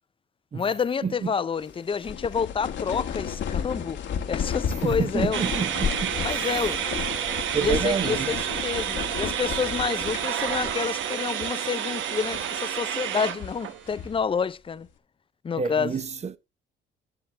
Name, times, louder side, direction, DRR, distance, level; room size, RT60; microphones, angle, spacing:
voice 1, 0.5-4.0 4.3-5.4 6.2-6.8 7.6-14.9 15.4-15.9, left 6 dB, 25° left, 0.5 m, -28 dB
sound 1, 1.6-11.1 11.4-11.5 12.1-12.6 13.1-14.2, left 8 dB, 65° left, 1.4 m, -33 dB
voice 2, 4.8-6.2 7.5-8.3 15.6-16.4, right 6 dB, 35° right, 0.9 m, -28 dB
sound 2, 5.3-13.9, right 10 dB, 75° right, 1.0 m, -30 dB
11.0 x 7.0 x 3.2 m
cardioid pair, 90°, 20 cm